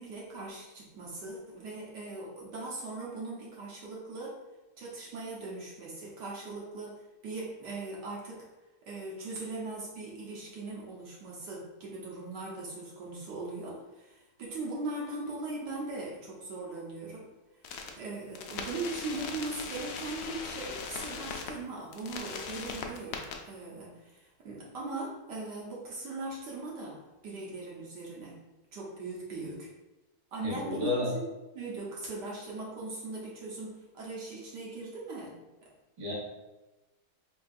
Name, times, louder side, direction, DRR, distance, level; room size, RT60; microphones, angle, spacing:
voice 1, 0.0-4.4 4.8-8.4 8.9-17.3 17.9-28.4 28.7-29.7 30.3-31.2 31.5-35.4 35.6-35.7, right 2 dB, 60° right, -4 dB, 1.3 m, -39 dB
sound 1, 17.6-17.9 18.3-21.5 21.9-23.3, left 5 dB, 80° left, 0.9 m, -39 dB
voice 2, 30.4-31.1 36.0-36.1, left 2 dB, 30° right, -6 dB, 0.6 m, -31 dB
4.3 x 3.5 x 2.4 m, 1.1 s
omnidirectional pair, 2.3 m